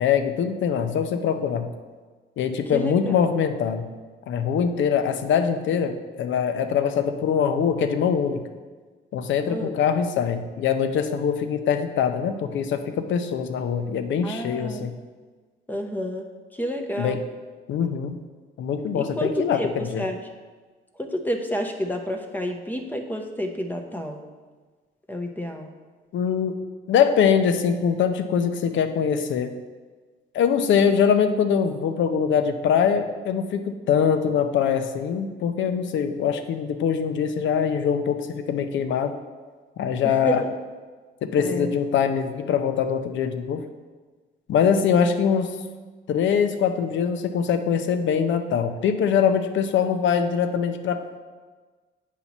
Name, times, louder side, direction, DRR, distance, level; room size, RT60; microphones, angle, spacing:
voice 1, 0.0-1.7 2.4-3.9 4.3-8.5 9.1-15.0 17.0-17.2 17.7-18.2 18.6-20.0 26.1-26.6 26.9-29.5 30.3-39.1 39.8-40.4 41.2-43.6 44.5-45.6 46.1-51.2, left 7 dB, 70° left, 8 dB, 0.6 m, -23 dB
voice 2, 2.7-3.3 9.5-9.8 14.2-14.9 15.7-17.2 18.9-20.2 21.0-24.2 25.1-25.7 40.0-40.5 41.4-41.7, equal, 10° left, 4 dB, 0.7 m, -30 dB
8.2 x 2.8 x 6.0 m, 1.4 s
cardioid pair, 90°, 20 cm